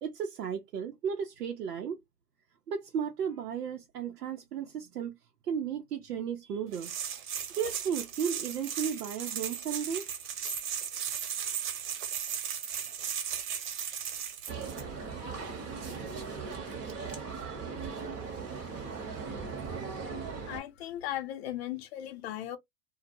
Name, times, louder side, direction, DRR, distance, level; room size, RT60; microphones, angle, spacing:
voice 1, 0.0-2.0 2.7-5.2 5.4-6.9 7.5-10.1 11.4-11.6, right 7 dB, 80° right, 0.6 m, -34 dB
sound 1, 6.7-14.8, right 8 dB, 60° right, 1.0 m, -36 dB
sound 2, 14.5-20.6, right 5 dB, 25° right, 0.7 m, -38 dB
voice 2, 20.5-22.6, left 12 dB, 45° left, 0.6 m, -37 dB
2.1 x 2.0 x 2.8 m
hypercardioid pair, 125°, 46 cm